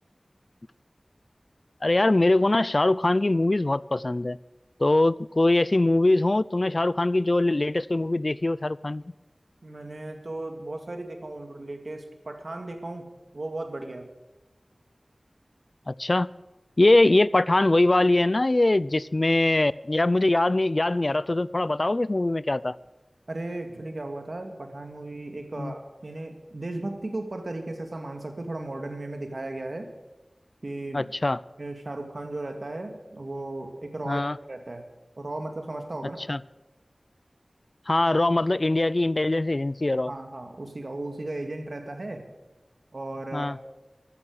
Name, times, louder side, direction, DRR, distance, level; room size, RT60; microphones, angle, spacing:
voice 1, 1.8-4.4 4.8-9.0 15.9-16.3 16.8-22.8 25.6-25.7 30.9-31.4 34.1-34.4 36.2-36.4 37.9-40.1 43.3-43.6, left 2 dB, 50° left, 20 dB, 0.4 m, -22 dB
voice 2, 9.6-13.1 13.3-14.0 23.3-29.9 30.6-31.1 31.6-34.2 34.5-34.8 35.2-36.2 40.1-42.3 42.9-43.5, right 2 dB, 65° right, 6 dB, 2.2 m, -36 dB
15.0 x 12.5 x 6.4 m, 1.1 s
wide cardioid pair, 45°, 0 cm